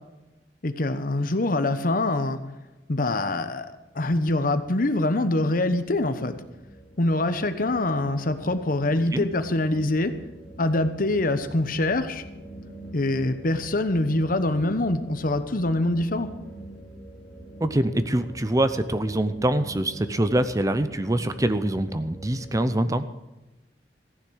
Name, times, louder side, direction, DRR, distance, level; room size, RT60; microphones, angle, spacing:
voice 1, 0.6-2.4 2.9-6.4 7.0-10.1 10.6-12.2 12.9-16.3, left 2 dB, 50° left, 10 dB, 1.0 m, -24 dB
sound 1, 3.6-22.7, right 1 dB, 10° left, 3.1 m, -45 dB
voice 2, 17.6-23.1, right 1 dB, 20° right, 12 dB, 0.7 m, -24 dB
15.0 x 10.5 x 6.4 m, 1.0 s
head